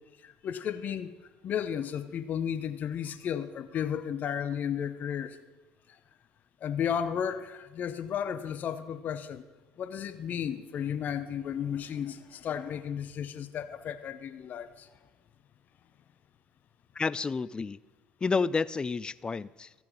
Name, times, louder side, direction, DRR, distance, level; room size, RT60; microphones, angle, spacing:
voice 1, 0.2-1.1 1.4-5.4 6.6-9.4 9.8-14.9, left 8 dB, 50° left, 12 dB, 0.7 m, -33 dB
voice 2, 17.0-17.8 18.2-19.7, left 4 dB, 25° left, 19 dB, 0.3 m, -30 dB
14.0 x 6.0 x 5.3 m, 1.2 s
hypercardioid pair, 65°, 4 cm